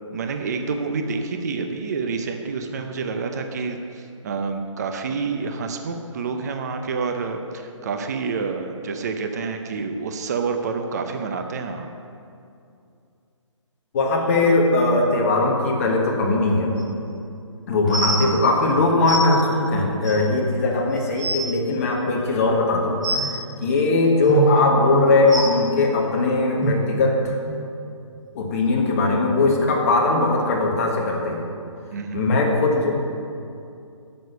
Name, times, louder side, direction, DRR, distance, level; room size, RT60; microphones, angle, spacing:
voice 1, 0.1-11.9 31.9-32.3, right 4 dB, 30° right, 5 dB, 0.6 m, -28 dB
voice 2, 13.9-16.7 17.7-27.2 28.3-31.4 32.1-32.9, left 2 dB, 25° left, -1 dB, 1.4 m, -20 dB
sound 1, 16.8-16.9 17.9-18.2 19.1-19.2 20.0-20.1 20.7-20.8 21.0-21.4 23.0-23.3 24.3-24.5 25.3-25.4 26.6-26.7 27.5-27.6 28.2-28.3, right 3 dB, 5° right, 0.9 m, -24 dB
9.4 x 6.5 x 6.6 m, 2.5 s
hypercardioid pair, 165°, 16 cm